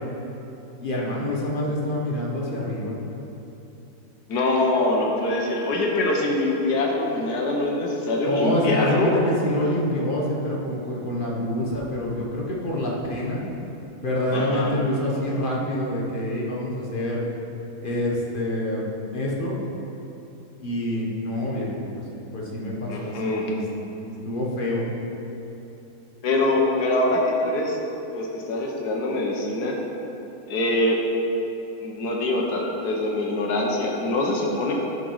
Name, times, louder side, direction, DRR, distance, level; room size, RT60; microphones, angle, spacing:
voice 1, 0.8-3.0 8.3-13.4 14.0-17.2 17.8-18.8 19.1-19.6 20.6-21.7 22.3-23.6 24.0-24.8, left 1 dB, 35° left, -4 dB, 1.4 m, -26 dB
voice 2, 4.3-9.2 14.3-14.7 22.9-23.5 26.2-27.8 28.1-29.8 30.5-31.0 31.8-34.7, left 2 dB, 85° left, -1 dB, 1.6 m, -24 dB
11.5 x 5.3 x 4.7 m, 3.0 s
omnidirectional pair, 1.7 m